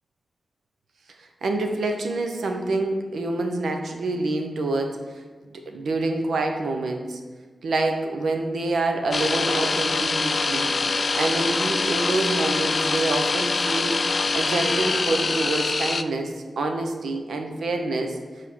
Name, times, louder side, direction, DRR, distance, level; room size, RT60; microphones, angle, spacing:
voice 1, 1.2-5.0 5.7-7.2 7.6-10.7 11.1-14.0 14.3-18.2, right 2 dB, 85° right, 4 dB, 0.8 m, -26 dB
sound 1, 9.1-16.0, left 3 dB, 55° left, 0.3 m, -24 dB
5.0 x 4.3 x 6.0 m, 1.4 s
cardioid pair, 50°, 0 cm